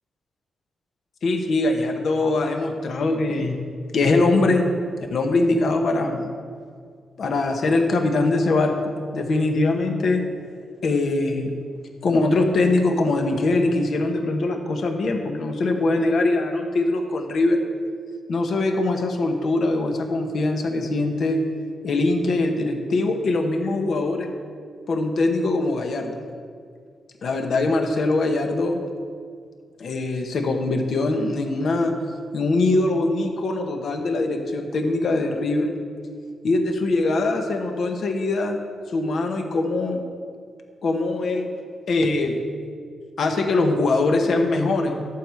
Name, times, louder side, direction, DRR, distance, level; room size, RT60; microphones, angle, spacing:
voice 1, 1.2-3.6 3.9-4.7 5.1-6.3 7.2-10.2 10.8-11.5 12.0-17.6 18.3-21.4 21.8-24.3 24.9-26.1 27.2-28.8 29.8-31.9 32.3-35.7 36.4-38.6 38.9-40.0 40.8-41.5 41.9-42.3 43.2-45.0, left 2 dB, 65° left, 3 dB, 1.1 m, -22 dB
11.5 x 5.0 x 7.6 m, 2.1 s
cardioid pair, 70°, 0 cm